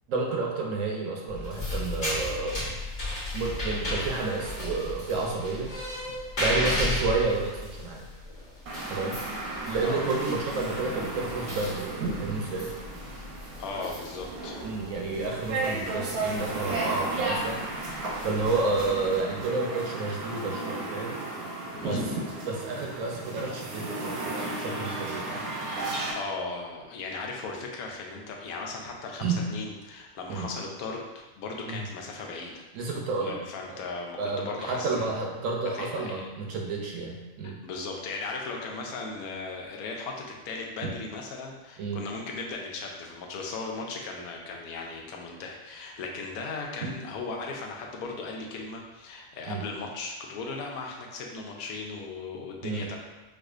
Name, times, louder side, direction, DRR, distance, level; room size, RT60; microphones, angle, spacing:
voice 1, 0.1-2.6 3.3-6.0 6.4-8.0 8.9-9.4 9.7-12.7 14.6-17.6 18.2-21.2 21.9-22.1 22.4-25.4 29.2-29.5 30.3-30.5 31.6-31.8 32.7-33.4 33.7-33.8 34.2-37.6 41.8-42.0 49.5-49.6 52.6-52.9, right 3 dB, 70° right, 0 dB, 0.9 m, -30 dB
sound 1, 1.3-19.4, left 1 dB, 45° left, 1.3 m, -36 dB
sound 2, 8.7-26.1, right 2 dB, 90° right, 1.2 m, -34 dB
voice 2, 13.6-14.6 21.8-22.2 25.8-32.7 33.2-35.2 35.7-36.3 37.4-53.0, left 3 dB, 90° left, 0 dB, 1.1 m, -37 dB
4.6 x 2.4 x 2.4 m, 1.1 s
omnidirectional pair, 1.5 m